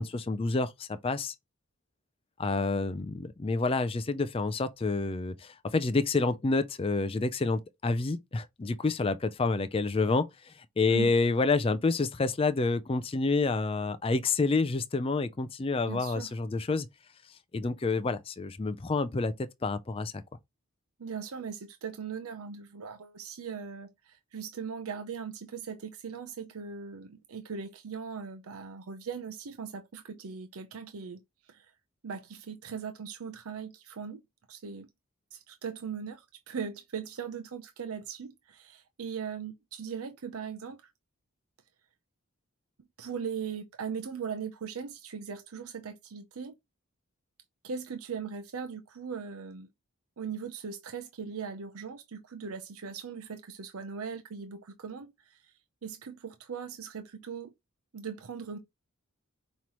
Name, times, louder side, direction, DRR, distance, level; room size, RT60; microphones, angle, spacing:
voice 1, 0.0-1.3 2.4-16.9 17.5-19.3 19.6-20.1, left 3 dB, 25° left, 0.4 m, -28 dB
voice 2, 15.9-16.3 21.0-31.2 31.5-31.7 32.0-34.2 34.5-34.9 35.3-40.8 43.0-46.5 47.6-49.7 50.2-55.5 55.8-57.5 57.9-58.6, right 6 dB, 80° right, 0.6 m, -39 dB
5.4 x 3.1 x 2.9 m
head